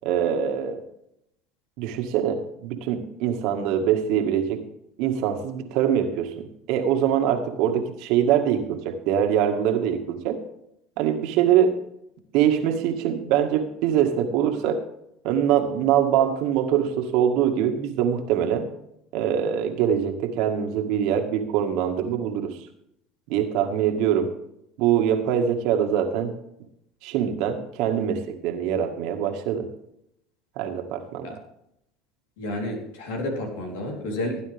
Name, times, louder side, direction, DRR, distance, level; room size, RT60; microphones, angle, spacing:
voice 1, 0.0-0.8 1.8-4.6 5.0-10.4 11.0-11.8 12.3-14.8 15.2-18.7 19.1-22.6 23.3-24.3 24.8-26.3 27.0-29.7 30.6-31.3, right 9 dB, 70° right, 5 dB, 1.9 m, -23 dB
voice 2, 32.4-34.4, left 1 dB, 85° left, 1 dB, 3.7 m, -30 dB
16.5 x 9.5 x 3.6 m, 0.78 s
supercardioid pair, 90°, 0 cm